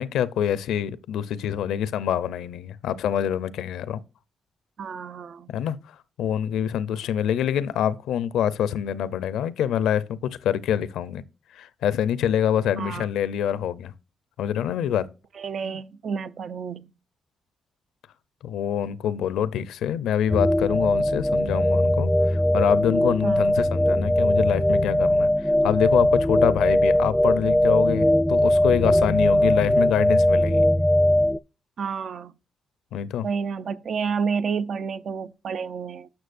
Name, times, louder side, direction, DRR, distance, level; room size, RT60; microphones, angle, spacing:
voice 1, 0.0-4.0 5.5-5.8 6.2-11.2 11.5-13.9 14.4-15.1 18.4-30.7 32.9-33.3, left 9 dB, 85° left, 0.6 m, -25 dB
voice 2, 4.8-5.5 6.9-7.1 12.8-13.1 15.3-16.9 23.2-23.5 29.4-29.5 31.8-32.3 33.2-36.1, right 6 dB, 60° right, 0.6 m, -30 dB
sound 1, 20.3-31.4, left 1 dB, 5° left, 0.3 m, -20 dB
11.5 x 6.2 x 2.5 m
cardioid pair, 70°, 0 cm